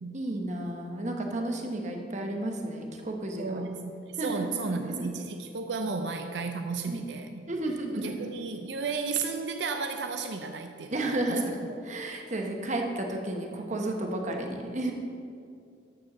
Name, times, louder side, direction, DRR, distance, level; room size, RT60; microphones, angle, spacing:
voice 1, 0.1-3.6 4.2-5.1 6.9-7.1 7.5-8.3 10.9-14.9, right 1 dB, 45° right, 2 dB, 1.2 m, -32 dB
voice 2, 3.4-7.3 7.9-11.8, right 4 dB, 80° right, 6 dB, 0.6 m, -33 dB
13.0 x 4.5 x 6.0 m, 2.4 s
head